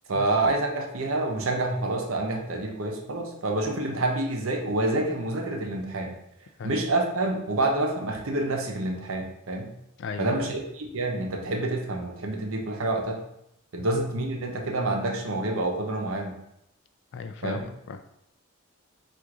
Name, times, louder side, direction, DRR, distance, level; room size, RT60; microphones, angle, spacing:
voice 1, 0.1-6.1 6.6-9.7 10.2-13.2 13.7-16.4 17.4-17.6, right 2 dB, 80° right, 2 dB, 0.8 m, -28 dB
voice 2, 10.0-10.5 13.8-13.9 17.1-18.0, left 5 dB, 60° left, 8 dB, 0.3 m, -36 dB
3.7 x 2.5 x 4.6 m, 0.80 s
head